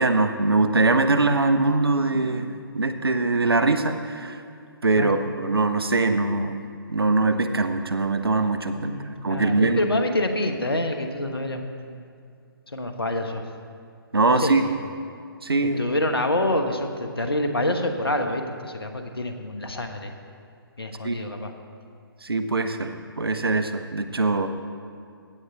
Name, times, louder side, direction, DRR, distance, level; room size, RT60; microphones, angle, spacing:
voice 1, 0.0-4.4 4.8-6.6 6.9-8.9 9.2-9.8 14.1-14.6 15.4-15.8 21.0-21.2 22.2-22.9 23.2-24.5, right 3 dB, 75° right, 8 dB, 0.8 m, -22 dB
voice 2, 8.8-12.0 12.7-13.4 14.4-14.8 15.6-20.1 20.8-21.5, left 1 dB, 75° left, 5 dB, 1.2 m, -27 dB
16.0 x 8.0 x 3.5 m, 2.3 s
figure-of-eight pair, 140°, 13 cm